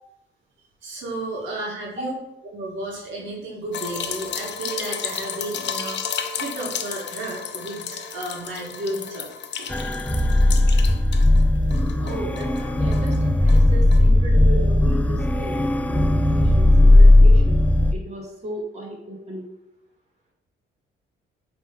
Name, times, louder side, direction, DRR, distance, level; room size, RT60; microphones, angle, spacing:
voice 1, 0.8-2.1 2.5-9.3 9.6-9.8, right 2 dB, 70° right, -3 dB, 1.8 m, -33 dB
sound 1, 3.7-11.4 11.7-13.2 13.5-13.6 13.9-14.0, left 7 dB, 60° left, 0.7 m, -33 dB
sound 2, 9.7-17.9, left 1 dB, 5° left, 0.5 m, -16 dB
voice 2, 12.0-17.6 17.9-19.5, right 1 dB, 35° right, -4 dB, 2.3 m, -36 dB
8.7 x 3.4 x 3.8 m, 0.87 s
cardioid pair, 90°, 20 cm